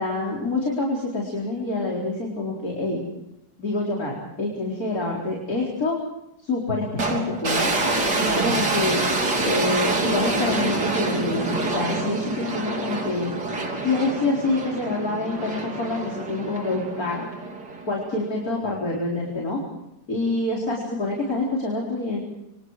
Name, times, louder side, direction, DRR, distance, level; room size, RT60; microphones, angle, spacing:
voice 1, 0.0-3.0 3.6-6.0 6.4-7.7 8.2-9.0 9.4-13.3 13.8-17.3 17.9-19.6 20.1-22.2, left 2 dB, 60° left, -2 dB, 4.9 m, -26 dB
sound 1, 7.0-18.2, right 2 dB, 85° right, 4.2 m, -26 dB
29.0 x 25.5 x 4.9 m, 0.84 s
omnidirectional pair, 1.8 m